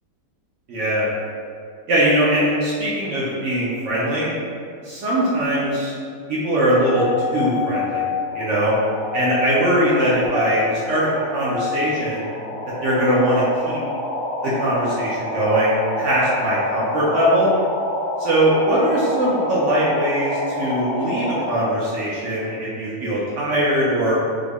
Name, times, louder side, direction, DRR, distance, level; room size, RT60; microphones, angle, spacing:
voice 1, 0.7-1.0 1.9-4.3 4.8-5.9 6.3-7.1 7.3-8.0 8.3-8.7 9.1-12.3 12.8-13.8 14.4-17.5 18.2-24.1, right 1 dB, 70° right, -7 dB, 0.7 m, -21 dB
sound 1, 6.7-21.6, left 2 dB, 75° left, 0.7 m, -28 dB
3.6 x 2.1 x 3.4 m, 2.3 s
omnidirectional pair, 1.9 m